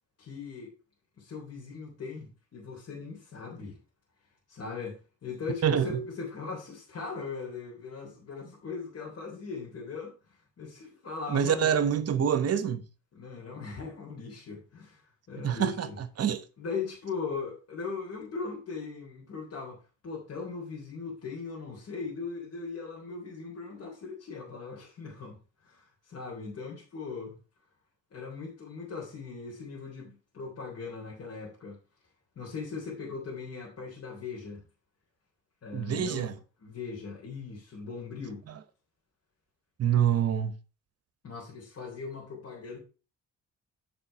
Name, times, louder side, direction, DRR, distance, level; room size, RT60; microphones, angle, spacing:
voice 1, 0.2-0.7 1.2-3.8 4.5-11.7 13.1-16.0 16.6-27.3 28.1-31.8 32.3-34.6 35.6-36.3 36.6-38.4 41.2-42.8, left 4 dB, 55° left, 3.4 m, -39 dB
voice 2, 5.6-6.1 11.3-12.9 15.4-16.4 35.7-36.3 39.8-40.6, right 8 dB, 55° right, 1.0 m, -26 dB
9.0 x 5.0 x 5.5 m
cardioid pair, 90°, 30 cm